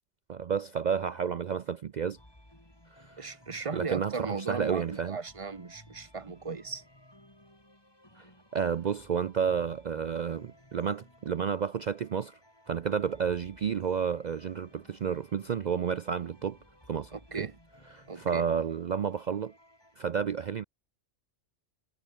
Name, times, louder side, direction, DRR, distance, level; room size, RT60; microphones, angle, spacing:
voice 1, 0.3-2.2 3.0-3.2 3.7-5.2 8.2-8.3 8.5-12.4 12.7-16.6 16.9-17.1 17.4-17.5 17.9-19.5 20.0-20.6, right 7 dB, 50° right, 0.5 m, -31 dB
sound 1, 2.2-20.0, left 1 dB, 20° left, 5.1 m, -58 dB
voice 2, 3.2-6.8 17.1-17.5 18.1-18.5, right 4 dB, 30° right, 1.1 m, -37 dB
omnidirectional pair, 1.2 m